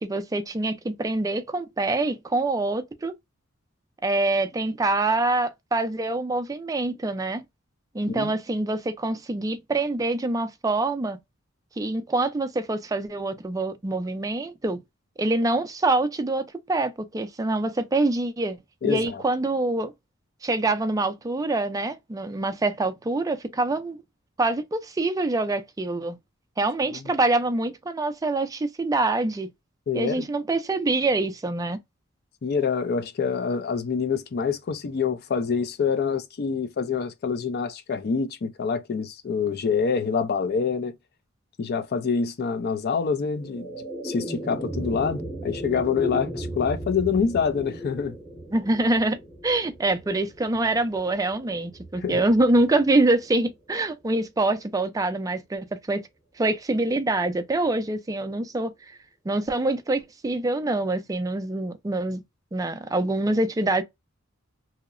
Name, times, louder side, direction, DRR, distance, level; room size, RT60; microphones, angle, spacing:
voice 1, 0.0-3.1 4.0-7.4 7.9-11.2 11.8-14.8 15.2-18.6 18.8-19.9 20.4-24.0 24.4-26.2 26.6-29.5 29.9-31.8 48.5-49.2 49.4-56.0 56.4-58.7 59.3-62.2 62.5-63.8, right 2 dB, 15° right, 0.4 m, -25 dB
voice 2, 18.8-19.2 26.9-27.1 29.9-30.3 32.4-40.9 41.6-48.2 52.0-52.2, left 6 dB, 50° left, 0.4 m, -26 dB
sound 1, 43.0-53.5, right 1 dB, 10° left, 0.9 m, -36 dB
2.8 x 2.0 x 2.3 m
head